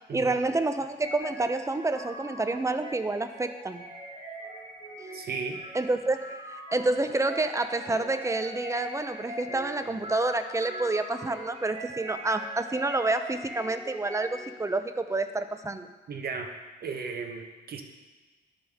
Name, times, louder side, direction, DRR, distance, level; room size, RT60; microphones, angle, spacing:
voice 1, 0.1-3.8 5.7-15.9, right 2 dB, 15° right, 9 dB, 0.5 m, -28 dB
sound 1, 1.0-14.7, right 1 dB, 30° right, 2.1 m, -42 dB
voice 2, 5.1-5.6 16.1-16.5 16.8-17.8, right 5 dB, 50° right, 5 dB, 1.0 m, -35 dB
12.0 x 5.3 x 3.5 m, 1.2 s
cardioid pair, 90°, 20 cm